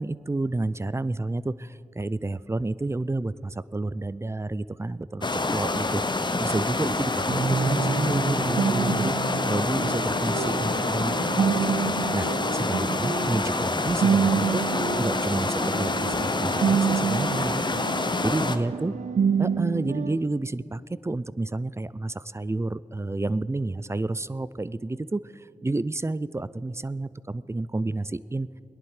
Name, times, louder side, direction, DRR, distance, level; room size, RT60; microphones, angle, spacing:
voice 1, 0.0-9.1 9.5-12.3 12.5-14.6 15.0-17.8 18.2-18.9 19.4-28.5, right 2 dB, 20° right, 18 dB, 0.4 m, -30 dB
sound 1, 5.2-18.6, left 3 dB, 35° left, 0.8 m, -27 dB
sound 2, 7.3-20.2, right 6 dB, 75° right, 0.5 m, -28 dB
18.5 x 10.5 x 4.9 m, 2.7 s
cardioid pair, 40°, 13 cm